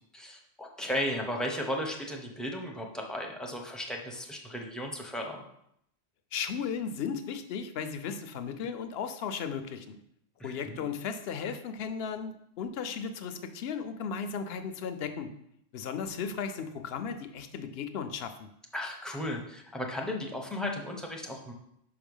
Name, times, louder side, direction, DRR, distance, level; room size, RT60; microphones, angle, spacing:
voice 1, 0.1-5.4 10.4-10.9 18.7-21.5, left 1 dB, ahead, 1 dB, 0.7 m, -35 dB
voice 2, 6.3-10.0 10.4-15.3 15.7-18.5, left 6 dB, 65° left, 9 dB, 0.8 m, -35 dB
5.4 x 4.8 x 5.4 m, 0.76 s
omnidirectional pair, 1.2 m